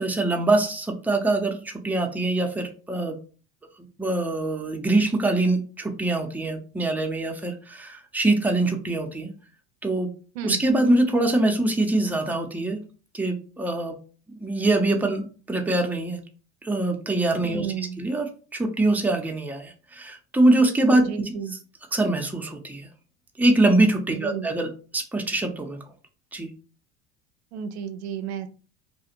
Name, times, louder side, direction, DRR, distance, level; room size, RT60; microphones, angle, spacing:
voice 1, 0.0-3.2 4.0-9.3 9.8-10.1 10.4-12.8 13.1-14.0 14.3-16.2 16.6-21.6 21.9-22.9 23.4-25.8 26.3-26.5, right 2 dB, 5° right, 3 dB, 0.6 m, -24 dB
voice 2, 17.4-18.0 21.0-21.5 24.1-24.5 27.5-28.5, right 7 dB, 85° right, 9 dB, 0.5 m, -32 dB
2.5 x 2.3 x 2.9 m, 0.38 s
hypercardioid pair, 85°, 32 cm